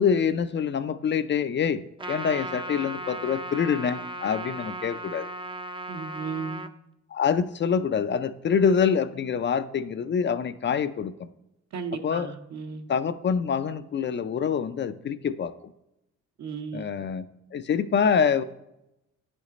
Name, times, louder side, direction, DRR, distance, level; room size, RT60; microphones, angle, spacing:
voice 1, 0.0-5.3 7.1-11.1 12.0-12.3 12.9-15.5 16.7-17.2 17.5-18.4, left 7 dB, 40° left, 12 dB, 0.4 m, -25 dB
Trumpet, 2.0-6.7, right 1 dB, 15° right, 0.5 m, -36 dB
voice 2, 5.9-6.6 11.7-12.9 16.4-17.0, right 5 dB, 65° right, 6 dB, 1.0 m, -35 dB
9.4 x 5.1 x 4.0 m, 0.88 s
cardioid pair, 90°, 30 cm